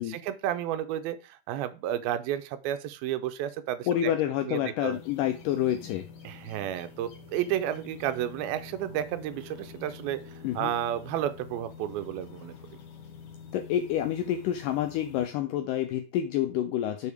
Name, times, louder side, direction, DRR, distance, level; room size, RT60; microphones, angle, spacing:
voice 1, 0.0-4.1 4.5-5.0 6.2-10.2 10.6-12.8, right 11 dB, 85° right, 11 dB, 2.4 m, -32 dB
voice 2, 3.9-6.1 10.4-10.7 13.5-17.1, left 11 dB, 85° left, 8 dB, 1.9 m, -28 dB
sound 1, 4.9-15.3, left 6 dB, 70° left, 1.4 m, -47 dB
7.1 x 4.8 x 4.8 m, 0.32 s
omnidirectional pair, 4.4 m